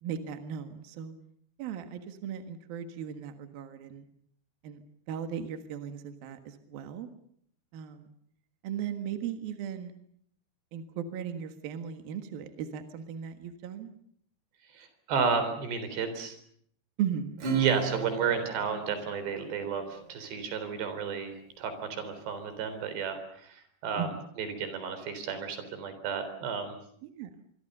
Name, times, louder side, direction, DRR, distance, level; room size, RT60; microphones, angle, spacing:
voice 1, 0.0-1.1 1.6-4.1 4.6-4.8 5.1-7.1 7.7-8.1 8.6-9.9 10.7-13.9 17.0-17.4 24.0-24.2 27.0-27.3, right 8 dB, 65° right, 8 dB, 3.3 m, -37 dB
voice 2, 14.7-16.4 17.6-24.1 24.4-26.8, right 6 dB, 90° right, 10 dB, 5.9 m, -32 dB
Acoustic guitar / Strum, 17.4-20.3, right 6 dB, 45° right, 4.8 m, -35 dB
26.0 x 24.0 x 6.8 m, 0.65 s
omnidirectional pair, 4.8 m